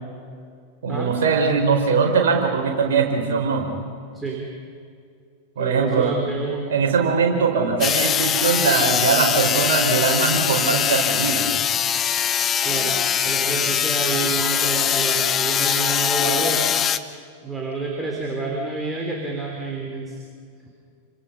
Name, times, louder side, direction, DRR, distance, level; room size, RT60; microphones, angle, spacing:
voice 1, 0.8-3.7 5.5-6.1 6.7-11.4, right 5 dB, 55° right, 2 dB, 5.0 m, -21 dB
voice 2, 4.1-4.5 5.6-6.7 12.6-16.7 17.4-20.2 20.6-20.7, right 3 dB, 10° right, -2 dB, 4.2 m, -28 dB
sound 1, 7.8-17.0, left 9 dB, 25° left, 1.0 m, -22 dB
29.0 x 26.0 x 5.6 m, 2.3 s
figure-of-eight pair, 90°, 0 cm